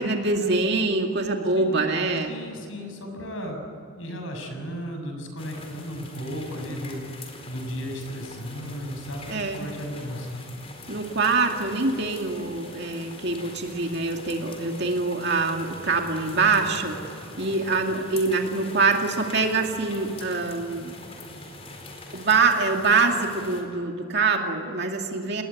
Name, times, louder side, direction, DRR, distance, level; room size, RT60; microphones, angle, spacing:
voice 1, 0.0-2.3 9.3-9.6 10.9-17.0 17.4-20.9 22.1-25.4, right 3 dB, 50° right, 2 dB, 2.3 m, -24 dB
voice 2, 2.2-3.6 4.0-7.0 7.5-10.5, equal, 65° left, 4 dB, 6.9 m, -35 dB
sound 1, 5.4-23.6, left 2 dB, 25° left, 4.4 m, -43 dB
29.5 x 20.0 x 9.5 m, 2.6 s
head